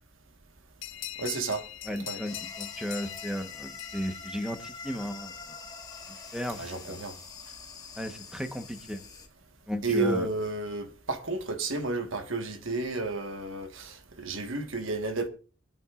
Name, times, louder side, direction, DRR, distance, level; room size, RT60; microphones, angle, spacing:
sound 1, 0.8-5.1, left 12 dB, 65° left, 0.8 m, -42 dB
voice 1, 1.2-1.6 2.0-2.2 6.5-7.1 9.8-15.3, right 3 dB, 65° right, 1.6 m, -32 dB
voice 2, 1.9-5.3 6.3-7.0 8.0-9.0 9.7-10.3, equal, 5° right, 1.2 m, -35 dB
sound 2, 2.2-9.3, left 5 dB, 20° left, 1.7 m, -45 dB
25.0 x 8.9 x 2.5 m
head